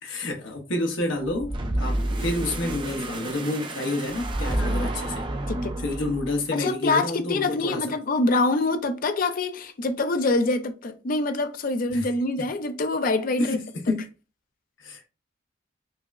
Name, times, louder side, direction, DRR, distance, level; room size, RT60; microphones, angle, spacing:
voice 1, 0.0-5.3 5.8-7.8 11.9-12.1 13.4-14.1 14.8-15.1, left 2 dB, 80° left, 0.8 m, -29 dB
sound 1, 1.2-6.5, right 1 dB, 25° right, 0.4 m, -29 dB
voice 2, 4.5-4.9 5.5-5.8 6.5-13.6, left 2 dB, 45° left, 0.5 m, -25 dB
5.5 x 2.1 x 2.4 m
head